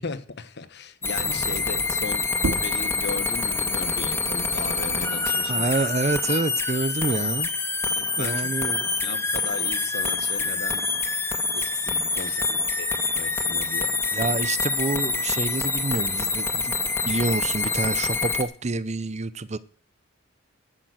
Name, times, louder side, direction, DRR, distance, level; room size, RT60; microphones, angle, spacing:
voice 1, 0.0-5.7 7.9-8.5 8.8-11.0 11.5-14.0, left 4 dB, 55° left, 1.2 m, -37 dB
sound 1, 1.0-18.4, left 3 dB, 15° left, 1.3 m, -26 dB
sound 2, 2.3-7.5 7.9-9.7, right 2 dB, 85° right, 0.8 m, -37 dB
voice 2, 5.5-7.5 8.2-8.9 12.3-12.4 14.1-16.8 17.0-19.6, right 3 dB, 35° right, 0.7 m, -27 dB
11.5 x 8.9 x 8.0 m
head